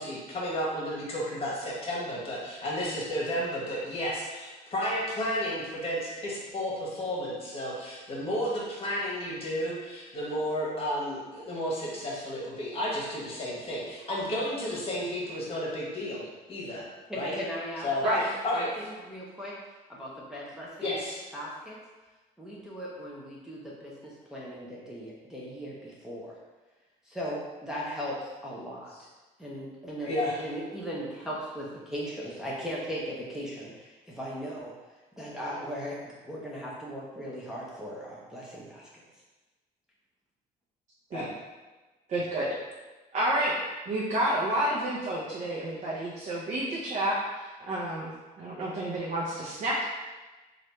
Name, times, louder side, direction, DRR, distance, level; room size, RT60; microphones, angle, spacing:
voice 1, 0.0-16.2 16.5-16.8 17.1-17.4 17.8-18.0 18.4-18.7 20.8-21.2 30.0-30.5 41.1-41.3, equal, 35° left, -5 dB, 1.4 m, -32 dB
voice 2, 17.1-18.2 18.5-19.5 19.9-20.9 21.3-21.8 22.4-26.4 27.1-28.9 29.4-30.1 30.4-34.7 35.2-38.9, equal, 5° right, -6 dB, 0.7 m, -38 dB
voice 3, 42.1-42.5 43.1-43.6 43.9-47.2 47.7-49.8, right 1 dB, 45° right, -6 dB, 0.8 m, -29 dB
3.2 x 2.6 x 4.3 m, 1.2 s
cardioid pair, 110°, 17 cm